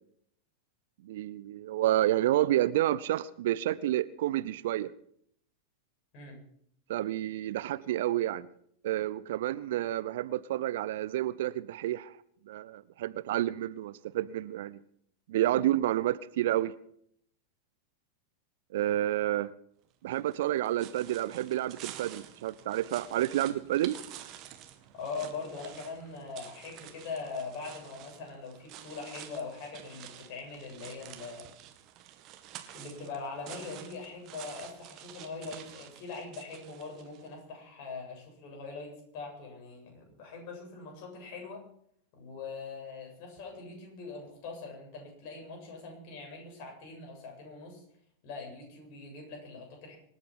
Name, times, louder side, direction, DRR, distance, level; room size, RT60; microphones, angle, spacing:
voice 1, 1.0-4.9 6.9-8.5 8.8-12.1 12.5-14.8 15.3-16.7 18.7-19.5 20.0-24.0, right 13 dB, 55° right, 0.6 m, -29 dB
sound 1, 20.1-37.3, right 12 dB, 40° right, 2.0 m, -49 dB
voice 2, 24.9-31.5 32.7-41.6 42.1-47.8 48.2-50.0, left 4 dB, 45° left, 7.8 m, -42 dB
26.0 x 8.8 x 6.0 m
figure-of-eight pair, 90°, 0 cm